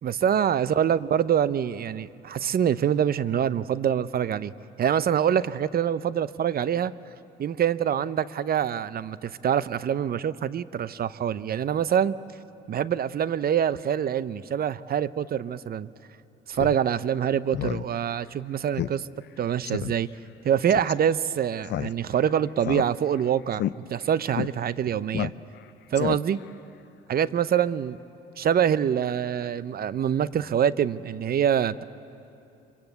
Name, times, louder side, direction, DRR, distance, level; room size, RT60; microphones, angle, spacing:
voice 1, 0.0-4.5 4.8-6.9 7.4-12.1 12.7-15.9 16.5-19.1 19.4-20.1 20.4-23.6 23.9-25.3 25.9-26.4 27.1-28.0 28.4-31.8, right 9 dB, 45° right, 17 dB, 0.7 m, -25 dB
Speech synthesizer, 16.5-16.8 17.1-17.2 17.5-17.8 18.2-18.3 18.8-18.9 19.2-19.3 19.7-19.9 20.7-20.9 21.6-22.2 22.6-23.2 23.5-23.7 24.3-24.5 25.1-25.6 25.9-26.5, left 12 dB, 55° left, 0.5 m, -30 dB
25.5 x 24.0 x 8.0 m, 2.7 s
supercardioid pair, 65°, 21 cm